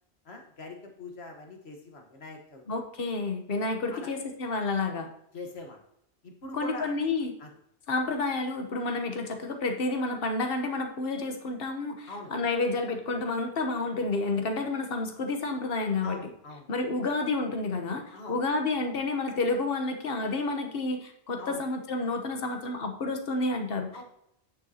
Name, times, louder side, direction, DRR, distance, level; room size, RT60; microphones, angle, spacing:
voice 1, 0.2-2.6 3.9-4.1 5.3-5.8 6.2-6.9 7.4-7.5 12.1-12.3 16.0-16.7 17.0-17.1 18.1-18.4 21.4-21.6 23.9-24.0, left 2 dB, 80° left, 2 dB, 1.7 m, -42 dB
voice 2, 2.7-5.1 6.5-7.3 7.9-16.2 16.7-24.0, left 3 dB, 65° left, 5 dB, 1.3 m, -30 dB
9.4 x 6.5 x 2.8 m, 0.73 s
omnidirectional pair, 1.1 m